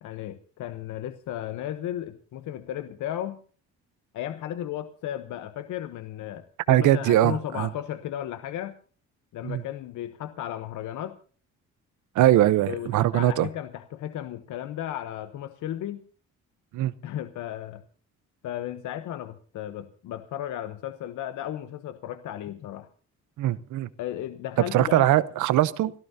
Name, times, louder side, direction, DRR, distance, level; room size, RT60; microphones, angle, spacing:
voice 1, 0.0-3.4 4.1-8.8 9.3-11.2 12.7-16.0 17.0-17.8 18.4-22.9 24.0-25.1, left 11 dB, 80° left, 10 dB, 0.9 m, -35 dB
voice 2, 6.7-7.7 9.4-9.6 12.1-13.5 16.7-16.9 23.4-23.9 24.7-25.9, right 14 dB, 80° right, 16 dB, 0.8 m, -21 dB
29.5 x 13.5 x 2.8 m, 0.41 s
cardioid pair, 90°, 30 cm